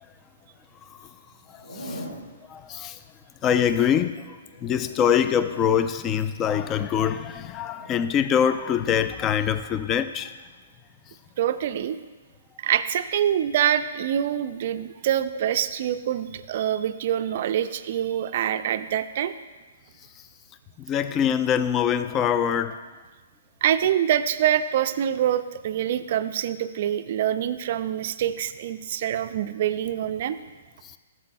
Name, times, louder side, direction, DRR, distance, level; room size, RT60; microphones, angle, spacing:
Zipper (clothing), 1.5-2.3 4.4-5.7 7.6-7.9, equal, 80° left, 2.8 m, -40 dB
voice 1, 1.5-2.1 2.5-3.0 3.4-10.3 20.8-22.8 30.8-31.0, left 8 dB, 25° left, 12 dB, 0.4 m, -24 dB
voice 2, 11.4-12.0 12.6-19.3 23.6-30.4, right 10 dB, 50° right, 11 dB, 0.4 m, -25 dB
14.5 x 7.4 x 2.2 m, 1.3 s
figure-of-eight pair, 120°, 0 cm